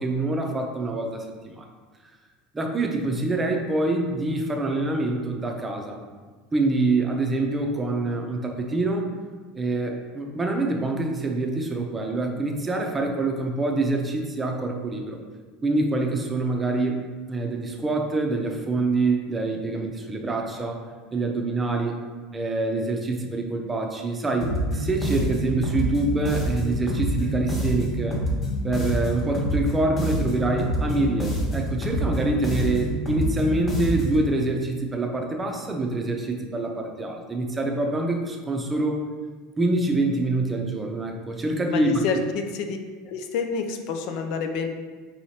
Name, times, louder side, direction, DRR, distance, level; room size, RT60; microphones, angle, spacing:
voice 1, 0.0-1.7 2.5-6.0 6.5-9.1 9.5-15.2 15.6-20.8 21.1-21.9 22.3-28.2 28.6-39.0 39.6-42.0, right 2 dB, 20° right, 2 dB, 0.6 m, -25 dB
sound 1, 24.4-34.3, equal, 35° left, 1.2 m, -27 dB
voice 2, 41.7-42.8 43.1-44.7, left 5 dB, 65° left, 5 dB, 0.4 m, -28 dB
4.7 x 3.0 x 2.8 m, 1.4 s
supercardioid pair, 110°, 0 cm